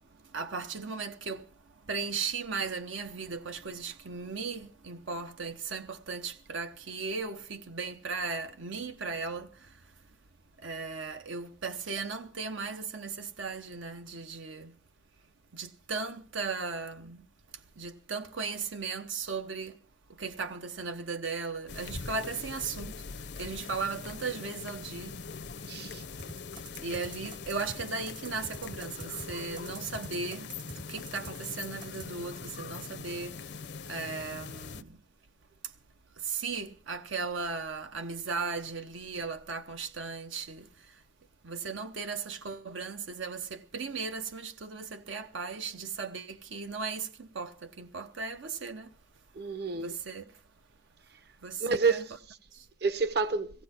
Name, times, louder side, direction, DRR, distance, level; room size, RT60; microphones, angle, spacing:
voice 1, 0.0-9.9 10.6-14.8 15.5-17.3 17.5-19.8 20.1-25.2 25.6-25.7 26.8-35.0 35.6-35.7 36.2-41.0 41.4-48.9 49.7-50.3 51.4-52.0 52.5-52.7, right 4 dB, 80° right, 1.0 m, -37 dB
sound 1, 21.7-34.8, left 5 dB, 60° left, 0.6 m, -42 dB
voice 2, 25.7-26.0 49.3-49.9 51.1-51.2 51.6-52.4 52.8-53.6, right 4 dB, 55° right, 1.0 m, -29 dB
sound 2, 26.2-32.1, right 2 dB, 25° right, 0.7 m, -45 dB
17.0 x 16.5 x 4.4 m
head